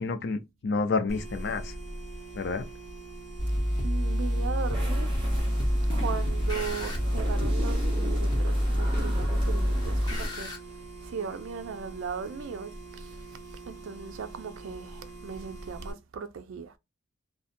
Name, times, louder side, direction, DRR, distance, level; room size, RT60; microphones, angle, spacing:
voice 1, 0.0-1.7 2.3-2.7, left 4 dB, 55° left, 0.4 m, -29 dB
sound 1, 1.1-15.9, right 2 dB, 50° right, 1.1 m, -43 dB
sound 2, 3.4-10.6, equal, 20° left, 0.8 m, -28 dB
voice 2, 3.8-5.1 5.9-13.2 13.7-16.8, right 6 dB, 80° right, 0.4 m, -38 dB
sound 3, 4.7-10.3, equal, 25° right, 0.9 m, -34 dB
2.6 x 2.1 x 2.5 m
head